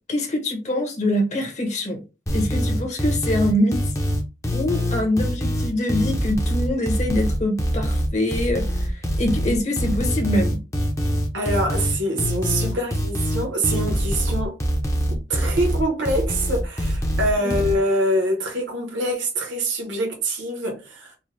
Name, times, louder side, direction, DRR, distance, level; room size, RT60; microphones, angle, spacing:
voice 1, 0.1-2.0 2.3-3.8 4.5-10.6 17.4-17.5, left 1 dB, 35° left, 1.1 m, -24 dB
sound 1, 2.3-17.7, equal, 15° left, 0.8 m, -24 dB
voice 2, 11.3-14.6 15.1-21.1, right 1 dB, 70° right, 1.2 m, -25 dB
4.5 x 2.3 x 3.3 m
head